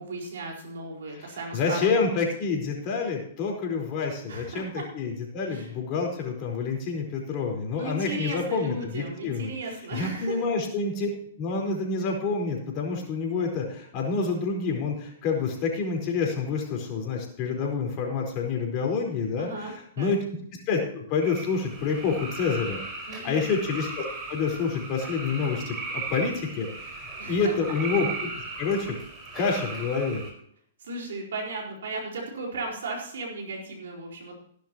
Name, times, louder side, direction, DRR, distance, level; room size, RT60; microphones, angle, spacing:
voice 1, 0.0-1.9 2.2-2.3 4.3-4.9 5.5-5.7 7.8-10.4 19.4-20.1 23.1-23.4 27.2-27.5 30.8-34.3, right 2 dB, 70° right, 0 dB, 4.7 m, -36 dB
voice 2, 1.5-9.5 9.9-11.1 11.4-19.7 20.0-20.2 20.7-28.3 28.6-29.0 29.3-30.2, left 4 dB, 40° left, 1 dB, 4.5 m, -28 dB
sound 1, 21.2-30.3, right 3 dB, 30° right, 5.2 m, -37 dB
16.5 x 11.5 x 3.0 m, 0.65 s
hypercardioid pair, 115°, 0 cm